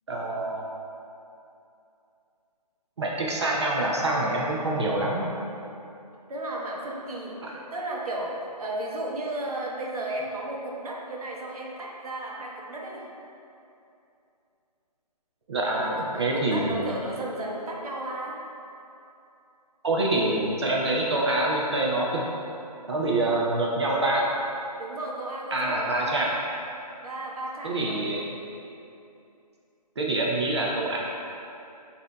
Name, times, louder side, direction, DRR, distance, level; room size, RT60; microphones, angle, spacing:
voice 1, 0.1-0.6 3.0-5.3 7.4-7.5 15.5-16.9 19.8-22.2 22.9-24.3 25.5-26.3 27.6-28.3 30.0-31.0, right 2 dB, 45° right, -3 dB, 0.5 m, -26 dB
voice 2, 6.3-13.1 16.1-18.4 24.8-26.4 27.0-28.2, right 1 dB, 60° right, -2 dB, 0.9 m, -34 dB
7.6 x 2.7 x 2.2 m, 2.7 s
hypercardioid pair, 160°, 21 cm